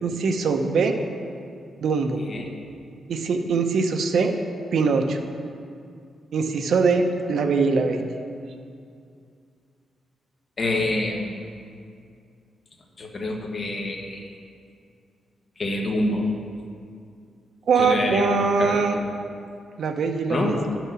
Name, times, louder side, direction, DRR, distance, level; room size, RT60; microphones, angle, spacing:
voice 1, 0.0-1.0 1.8-2.2 3.1-4.3 4.7-5.2 6.3-8.0 17.7-19.0 19.8-20.6, right 4 dB, 65° right, 5 dB, 0.9 m, -22 dB
voice 2, 10.6-11.4 13.0-14.3 15.6-16.3 17.8-19.0 20.3-20.6, left 2 dB, 35° left, 0 dB, 1.3 m, -27 dB
11.0 x 6.2 x 6.2 m, 2.3 s
wide cardioid pair, 150°, 0 cm